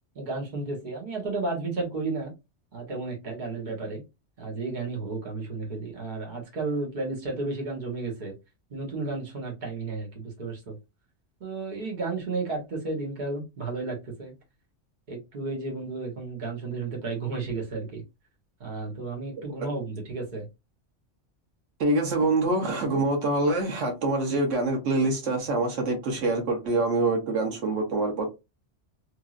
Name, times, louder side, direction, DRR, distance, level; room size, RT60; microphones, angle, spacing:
voice 1, 0.1-2.3 2.7-4.0 4.4-8.3 8.7-10.8 11.4-14.3 15.1-18.0 18.6-20.5, right 3 dB, 40° right, 1.2 m, -33 dB
voice 2, 21.8-28.3, right 2 dB, 85° right, 1.2 m, -25 dB
3.0 x 2.6 x 2.4 m
omnidirectional pair, 1.2 m